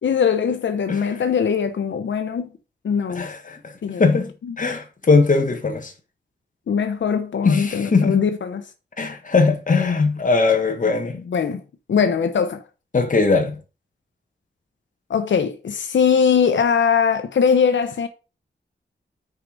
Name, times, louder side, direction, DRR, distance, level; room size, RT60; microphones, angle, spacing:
voice 1, 0.0-2.5 2.8-3.3 3.8-4.1 4.4-4.5 6.7-8.6 11.3-11.6 11.9-12.6 15.1-18.1, left 6 dB, 90° left, 0.9 m, -21 dB
voice 2, 3.1-3.7 4.0-5.9 7.4-8.2 9.0-11.2 12.9-13.6, left 4 dB, 45° left, 1.6 m, -20 dB
6.6 x 4.9 x 5.3 m
wide cardioid pair, 115°, 19 cm